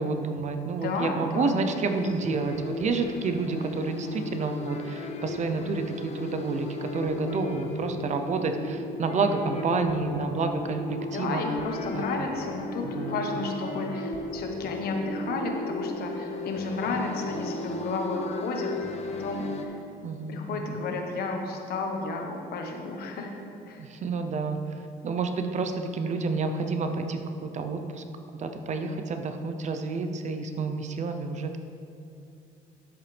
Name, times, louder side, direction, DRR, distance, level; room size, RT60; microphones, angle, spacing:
voice 1, 0.0-11.4 11.9-12.0 12.8-13.2 13.7-13.8 20.0-20.7 23.8-24.6 25.0-28.0 28.4-31.6, right 4 dB, 45° right, 7 dB, 0.7 m, -29 dB
voice 2, 0.8-2.0 11.1-19.8 20.3-23.3 23.6-23.9, left 3 dB, 65° left, 2 dB, 1.3 m, -32 dB
sound 1, 1.8-19.7, left 2 dB, 40° left, 0.9 m, -35 dB
10.5 x 7.8 x 3.4 m, 2.6 s
cardioid pair, 110°, 17 cm